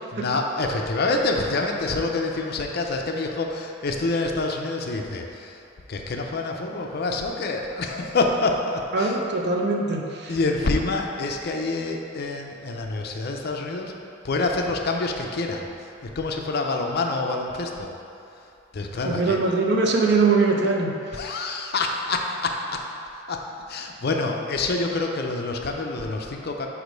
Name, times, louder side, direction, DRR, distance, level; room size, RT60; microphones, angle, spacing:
voice 1, 0.1-5.6 5.9-9.2 10.3-13.9 14.2-17.9 18.7-19.4 21.1-22.8 23.3-23.4 23.7-26.7, left 3 dB, 50° left, 2 dB, 0.5 m, -27 dB
voice 2, 8.9-10.3 19.0-21.0, right 3 dB, 55° right, 0 dB, 0.6 m, -22 dB
4.9 x 4.4 x 5.2 m, 2.7 s
head